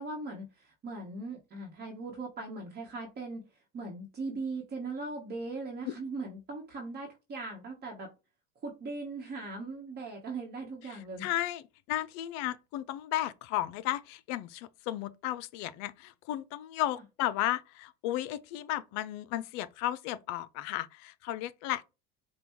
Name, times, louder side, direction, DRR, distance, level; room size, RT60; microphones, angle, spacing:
voice 1, 0.0-3.4 3.7-8.1 8.6-11.3, right 3 dB, 30° right, 1.1 m, -39 dB
voice 2, 11.2-11.6 11.9-21.8, left 14 dB, 60° left, 0.5 m, -34 dB
5.2 x 2.2 x 3.0 m
supercardioid pair, 105°, 31 cm